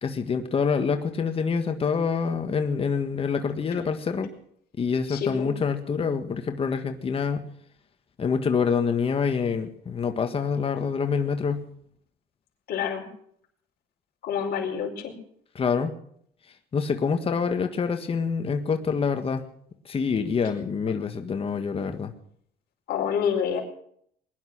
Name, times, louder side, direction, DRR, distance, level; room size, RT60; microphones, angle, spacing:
voice 1, 0.0-4.3 4.8-7.4 8.2-11.6 15.5-15.9 16.7-19.4 19.8-22.1, left 5 dB, 35° left, 6 dB, 1.7 m, -26 dB
voice 2, 5.1-5.5 12.7-13.1 14.2-15.1 22.9-23.6, left 7 dB, 65° left, 0 dB, 4.8 m, -27 dB
21.0 x 11.0 x 6.2 m, 0.66 s
cardioid pair, 110°, 17 cm